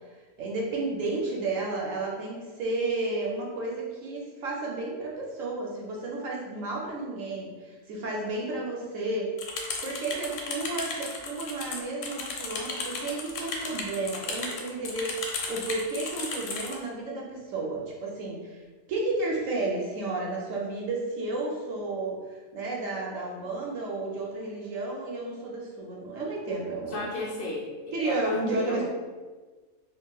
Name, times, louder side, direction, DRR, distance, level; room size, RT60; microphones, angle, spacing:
voice 1, 0.4-9.3 9.8-18.6 18.9-22.2 22.5-27.1 27.9-28.8, right 2 dB, 70° right, -2 dB, 0.9 m, -32 dB
sound 1, 9.4-16.8, left 4 dB, 90° left, 1.1 m, -35 dB
voice 2, 26.9-28.8, left 2 dB, 65° left, -4 dB, 1.0 m, -35 dB
3.8 x 2.4 x 2.3 m, 1.4 s
omnidirectional pair, 1.6 m